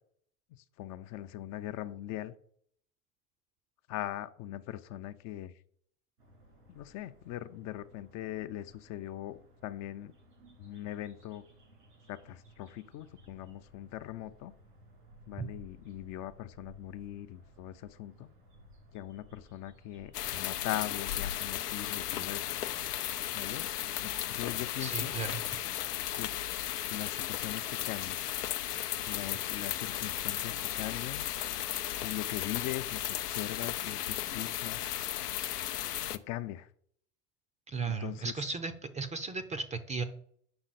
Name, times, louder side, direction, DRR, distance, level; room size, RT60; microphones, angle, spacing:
voice 1, 0.5-2.3 3.9-5.5 6.7-10.1 10.6-11.4 12.1-14.5 15.3-18.3 18.9-22.5 23.3-23.7 24.0-25.1 26.2-26.3 26.9-28.2 29.0-31.2 32.0-34.9 36.3-36.7 37.8-38.3, left 13 dB, 40° left, 12 dB, 0.5 m, -40 dB
sound 1, 6.2-23.7, equal, 90° right, 3.1 m, -58 dB
sound 2, 20.1-36.2, left 12 dB, 90° left, 0.6 m, -35 dB
voice 2, 24.8-25.4 37.7-40.0, right 4 dB, 15° right, 11 dB, 0.5 m, -35 dB
7.7 x 5.6 x 4.1 m, 0.64 s
hypercardioid pair, 90°, 45 cm